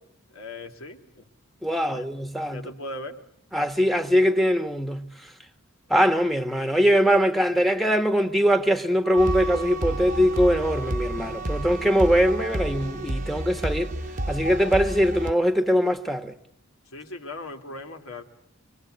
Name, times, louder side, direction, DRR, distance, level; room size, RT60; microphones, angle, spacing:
voice 1, 0.3-1.2 1.8-2.1 2.5-3.2 16.9-18.2, left 2 dB, 75° left, 3.4 m, -38 dB
voice 2, 1.6-2.6 3.5-5.1 5.9-13.9 14.3-16.3, equal, ahead, 1.4 m, -22 dB
Wind instrument woodwind instrument, 9.0-14.9, right 5 dB, 15° left, 1.3 m, -39 dB
sound 1, 9.2-15.3, right 1 dB, 35° right, 1.0 m, -31 dB
26.0 x 24.5 x 8.1 m
head